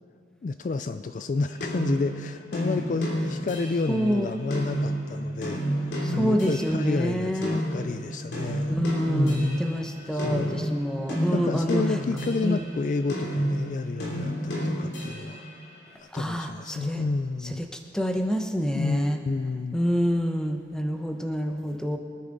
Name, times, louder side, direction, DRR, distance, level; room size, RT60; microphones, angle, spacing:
voice 1, 0.4-8.8 9.0-9.6 10.1-10.7 11.3-15.4 16.0-17.6 18.7-19.8, left 3 dB, 45° left, 11 dB, 0.3 m, -30 dB
sound 1, 1.6-6.9 7.4-12.7 13.1-15.5, equal, 80° left, 3.0 m, -30 dB
voice 2, 3.9-4.3 6.0-7.6 8.7-11.8 12.4-12.6 16.1-17.0 17.6-17.7 17.9-19.2 19.7-22.0, equal, 5° left, 4 dB, 0.8 m, -27 dB
24.0 x 9.5 x 3.9 m, 2.5 s
head